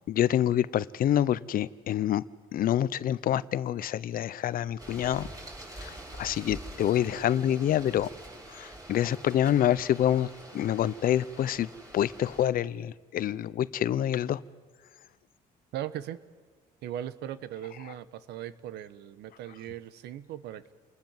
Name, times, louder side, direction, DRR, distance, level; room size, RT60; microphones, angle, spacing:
voice 1, 0.2-2.2 2.5-5.3 5.7-8.1 8.5-11.7 11.9-14.4, left 11 dB, 60° left, 0.9 m, -27 dB
sound 1, 4.8-12.4, right 1 dB, 20° right, 7.0 m, -46 dB
voice 2, 15.7-16.2 16.8-20.7, right 11 dB, 80° right, 1.3 m, -38 dB
28.5 x 20.0 x 7.4 m
cardioid pair, 110°, 17 cm